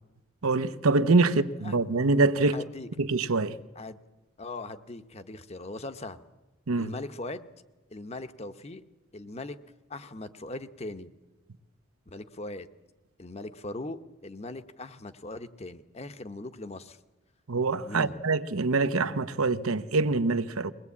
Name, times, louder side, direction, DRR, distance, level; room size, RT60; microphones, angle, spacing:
voice 1, 0.4-2.6 3.0-3.6 6.7-6.9 17.5-20.7, right 3 dB, 90° right, 1.0 m, -25 dB
voice 2, 2.5-2.9 3.7-4.0 4.4-6.2 6.8-7.5 7.9-8.8 9.1-9.6 9.9-11.1 12.1-12.7 13.2-17.0 17.8-18.2, left 2 dB, 30° left, 0.9 m, -40 dB
22.0 x 19.5 x 8.5 m
head